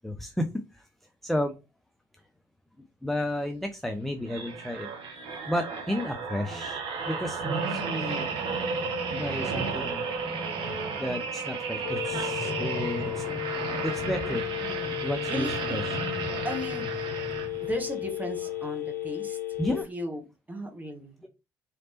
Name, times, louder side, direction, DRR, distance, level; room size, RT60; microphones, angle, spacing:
voice 1, 0.0-0.9 1.2-1.6 3.0-6.8 7.1-8.3 9.1-10.1 11.0-13.2 13.8-14.5 15.0-16.0 19.6-19.9, left 1 dB, ahead, 0.6 m, -32 dB
sound 1, 4.3-17.8 18.4-18.6, right 4 dB, 55° right, 1.2 m, -33 dB
Telephone, 11.8-19.8, left 15 dB, 90° left, 0.4 m, -34 dB
sound 2, 11.9-17.6, left 3 dB, 45° left, 0.9 m, -41 dB
voice 2, 15.3-15.8 16.4-17.0 17.6-19.4 19.7-20.2 20.5-21.3, equal, 15° right, 1.4 m, -36 dB
4.0 x 3.2 x 2.9 m
figure-of-eight pair, 45°, 10 cm